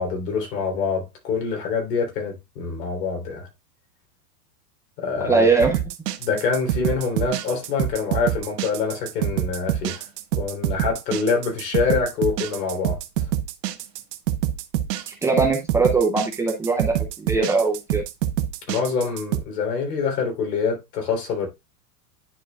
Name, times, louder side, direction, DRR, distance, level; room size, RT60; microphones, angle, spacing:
voice 1, 0.0-3.5 5.0-5.5 6.2-10.0 10.4-13.0 18.7-21.5, left 5 dB, 80° left, 3.7 m, -25 dB
voice 2, 5.2-5.8 15.1-18.0, right 4 dB, 5° right, 0.5 m, -21 dB
sound 1, 5.6-19.4, right 12 dB, 90° right, 1.0 m, -26 dB
10.0 x 5.0 x 2.3 m
supercardioid pair, 150°, 47 cm